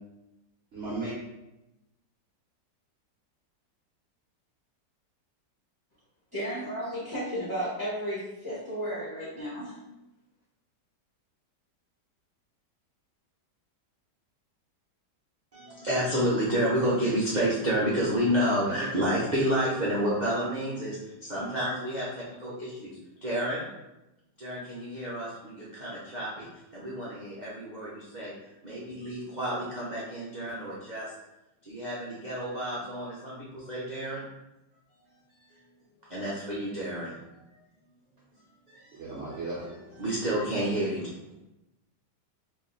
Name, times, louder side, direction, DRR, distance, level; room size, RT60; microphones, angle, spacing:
voice 1, 0.7-1.1 18.7-19.1 38.9-40.0, right 2 dB, 50° right, -7 dB, 0.9 m, -36 dB
voice 2, 6.3-9.8, equal, 15° left, -12 dB, 1.1 m, -33 dB
voice 3, 15.5-23.7 24.4-26.5 26.7-28.3 28.6-31.1 31.6-34.2 35.4-35.6 36.1-37.1 38.7-39.0 39.3-39.4 40.0-41.1, equal, 85° right, -7 dB, 0.4 m, -30 dB
3.0 x 2.7 x 3.8 m, 0.95 s
omnidirectional pair, 1.9 m